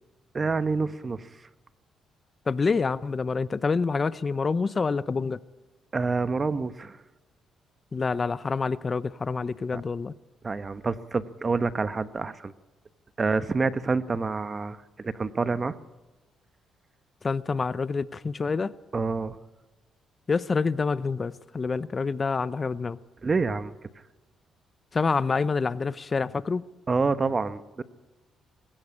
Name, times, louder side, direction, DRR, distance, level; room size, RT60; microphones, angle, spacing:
voice 1, 0.3-1.3 5.9-7.0 9.7-9.8 10.4-12.5 13.2-15.7 18.9-19.4 23.2-23.8 26.9-27.8, right 4 dB, 30° right, 1.1 m, -27 dB
voice 2, 2.5-5.4 7.9-10.1 17.2-18.7 20.3-23.0 24.9-26.6, left 4 dB, 35° left, 0.6 m, -27 dB
21.5 x 16.5 x 8.6 m
cardioid pair, 90°, 0 cm